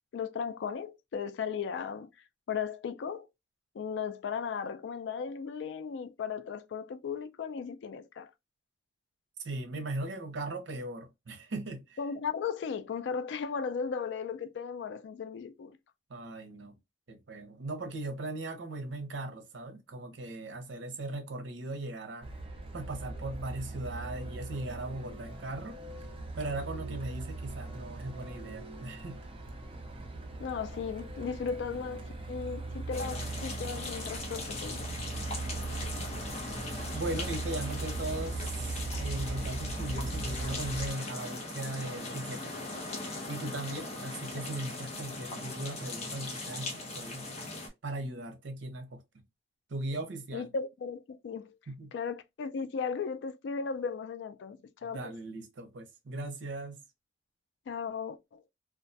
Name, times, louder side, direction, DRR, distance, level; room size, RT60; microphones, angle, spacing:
voice 1, 0.1-2.1 2.5-3.3 3.7-8.3 12.0-15.8 30.4-34.9 44.4-44.5 50.3-51.5 51.9-55.1 57.7-58.4, left 6 dB, 70° left, 0.3 m, -36 dB
voice 2, 9.4-12.0 16.1-16.8 17.1-22.3 22.7-25.8 26.4-29.2 35.8-42.5 42.9-47.3 47.8-49.2 49.7-50.5 51.7-51.9 54.8-56.8, right 2 dB, 75° right, 0.6 m, -39 dB
Truck, 22.2-40.9, right 2 dB, 30° right, 0.4 m, -39 dB
sound 1, 32.9-47.7, left 2 dB, 35° left, 0.7 m, -39 dB
2.3 x 2.2 x 2.6 m
head